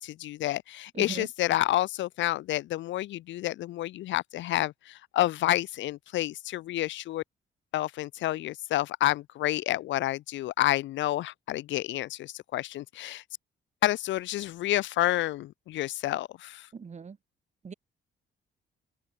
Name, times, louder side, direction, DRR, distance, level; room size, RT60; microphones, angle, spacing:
voice 1, 0.0-7.2 7.7-13.2 13.8-16.7, left 15 dB, 70° left, 0.4 m, -29 dB
voice 2, 1.0-1.3 16.7-17.2 17.6-17.7, right 5 dB, 35° right, 1.9 m, -38 dB
open air
cardioid pair, 90°, 20 cm